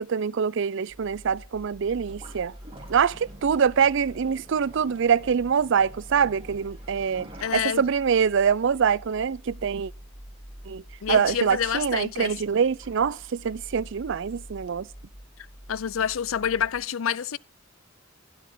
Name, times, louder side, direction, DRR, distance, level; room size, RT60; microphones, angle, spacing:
voice 1, 0.0-2.5 2.9-9.9 10.7-14.9, right 6 dB, 65° right, 0.5 m, -24 dB
sound 1, 0.9-16.8, equal, 30° left, 2.3 m, -46 dB
sound 2, 2.1-13.1, right 2 dB, 30° right, 3.7 m, -50 dB
voice 2, 7.4-7.8 11.0-12.3 15.7-17.4, left 8 dB, 85° left, 0.5 m, -27 dB
12.5 x 11.5 x 3.9 m
head